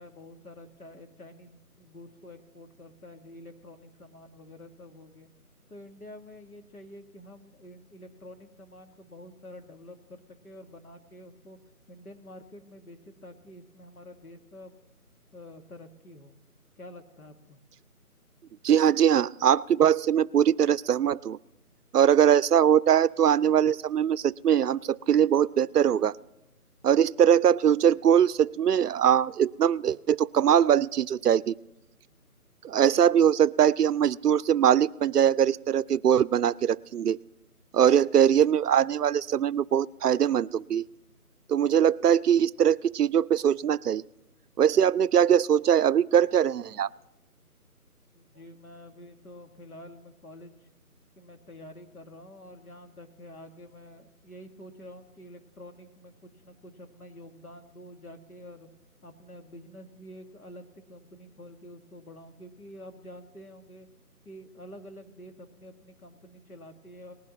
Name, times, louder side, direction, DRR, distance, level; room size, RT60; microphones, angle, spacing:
voice 1, 0.0-5.3 5.7-11.6 11.9-14.8 15.3-16.4 16.8-17.6 48.1-50.7 51.2-58.7 59.0-63.9 64.2-67.1, left 1 dB, 70° left, 5 dB, 2.0 m, -48 dB
voice 2, 18.6-21.4 21.9-26.1 26.8-31.5 32.6-37.2 37.7-40.8 41.5-44.0 44.6-46.9, right 9 dB, 80° right, 20 dB, 0.5 m, -22 dB
19.5 x 11.5 x 3.0 m, 0.94 s
figure-of-eight pair, 165°, 46 cm